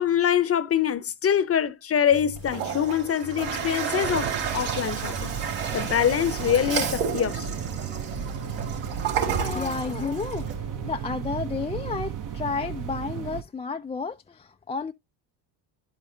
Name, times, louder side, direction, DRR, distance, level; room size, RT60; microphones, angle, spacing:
voice 1, 0.0-7.5, left 9 dB, 30° left, 0.8 m, -25 dB
sound 1, 2.0-11.2, left 8 dB, 80° left, 1.2 m, -44 dB
Toilet flush, 2.3-10.5, right 7 dB, 80° right, 3.3 m, -31 dB
sound 2, 4.0-13.4, right 9 dB, 45° right, 0.9 m, -34 dB
voice 2, 9.2-14.9, left 5 dB, 15° left, 0.3 m, -32 dB
10.5 x 5.1 x 2.7 m
hypercardioid pair, 70°, 44 cm